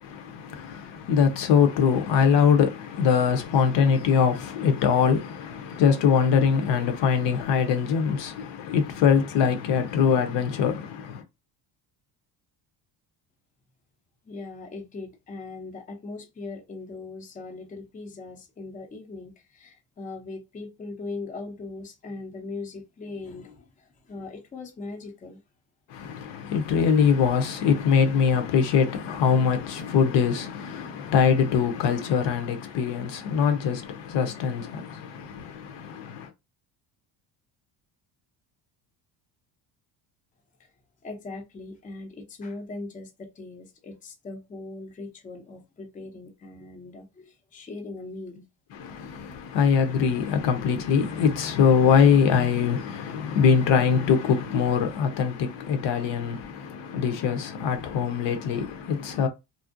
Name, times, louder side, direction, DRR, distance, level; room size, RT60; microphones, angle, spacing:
voice 1, 0.0-11.2 25.9-36.3 48.7-59.3, left 6 dB, 65° left, 0.7 m, -23 dB
voice 2, 14.3-25.4 41.0-48.4, left 3 dB, 20° left, 0.5 m, -39 dB
2.5 x 2.0 x 2.5 m
cardioid pair, 95°, 46 cm